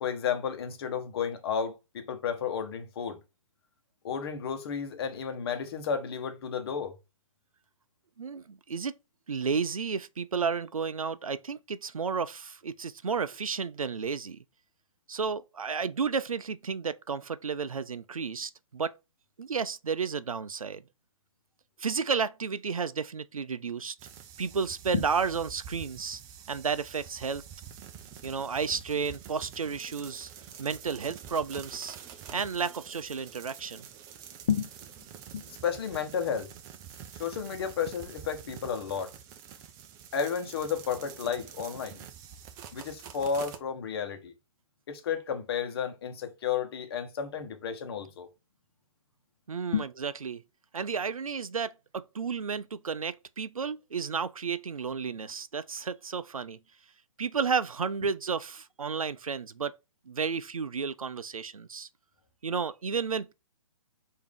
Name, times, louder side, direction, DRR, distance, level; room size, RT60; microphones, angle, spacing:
voice 1, 0.0-3.2 4.0-6.9 24.9-25.0 34.5-34.7 35.3-36.5 37.2-39.1 40.1-42.0 42.7-44.3 44.9-48.3 49.7-49.8, left 7 dB, 45° left, 1.0 m, -32 dB
voice 2, 8.2-9.0 9.3-14.4 15.1-18.9 19.4-20.8 21.8-24.0 24.4-26.2 26.5-27.4 28.2-30.3 30.6-32.0 32.3-33.9 49.5-50.4 50.7-56.6 57.2-59.7 60.1-61.9 62.4-63.3, right 5 dB, 90° right, 0.4 m, -32 dB
sound 1, 24.0-43.6, right 8 dB, 20° right, 0.4 m, -47 dB
4.8 x 2.8 x 3.6 m
figure-of-eight pair, 130°, 17 cm